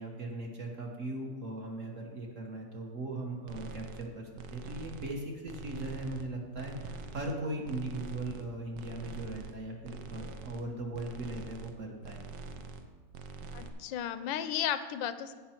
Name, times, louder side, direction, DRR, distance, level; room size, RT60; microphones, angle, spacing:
voice 1, 0.0-12.2, right 2 dB, 45° right, 0 dB, 1.5 m, -39 dB
sound 1, 3.5-4.1 4.4-5.2 5.5-6.3 6.6-7.4 7.6-8.4 8.7-9.6 9.8-10.6 10.9-11.8 12.0-12.9 13.1-13.7, right 4 dB, 70° right, 1.3 m, -44 dB
voice 2, 13.5-15.3, left 10 dB, 80° left, 12 dB, 1.3 m, -34 dB
15.5 x 5.6 x 4.4 m, 1.4 s
omnidirectional pair, 2.1 m